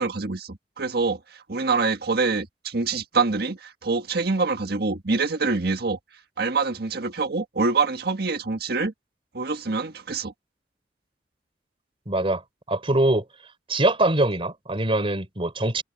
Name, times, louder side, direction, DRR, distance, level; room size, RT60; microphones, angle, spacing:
voice 1, 0.0-6.0 6.4-8.9 9.3-10.3, right 4 dB, 65° right, 1.6 m, -25 dB
voice 2, 12.1-12.4 12.7-13.2 13.7-15.8, right 2 dB, 30° right, 3.8 m, -23 dB
head